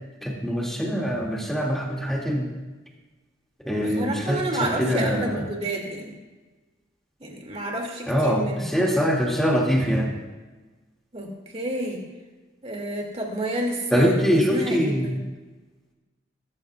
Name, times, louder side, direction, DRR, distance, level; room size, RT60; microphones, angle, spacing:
voice 1, 0.2-2.5 3.6-5.4 8.1-10.2 13.9-15.1, equal, ahead, -3 dB, 2.4 m, -23 dB
voice 2, 3.7-6.1 7.2-8.7 11.1-11.3 11.5-12.0 12.6-14.1 14.5-15.2, right 1 dB, 30° right, 0 dB, 2.6 m, -30 dB
20.5 x 14.0 x 2.5 m, 1.3 s
head